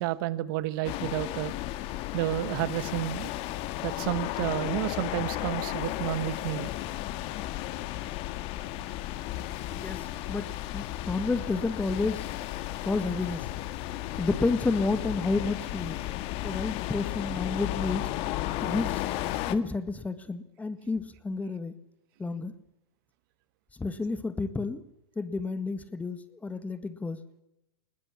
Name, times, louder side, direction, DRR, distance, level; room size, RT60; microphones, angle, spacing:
voice 1, 0.0-1.5 2.1-3.3 3.8-6.7, right 15 dB, 55° right, 15 dB, 1.4 m, -31 dB
sound 1, 0.8-19.6, left 15 dB, 45° left, 1.7 m, -34 dB
voice 2, 9.7-12.3 12.8-13.5 14.2-16.0 16.4-18.1 18.6-19.0 19.5-21.7 22.2-22.5 23.8-24.8 25.1-27.2, left 3 dB, 10° left, 13 dB, 1.7 m, -30 dB
21.0 x 19.5 x 8.5 m, 0.85 s
hypercardioid pair, 115°, 14 cm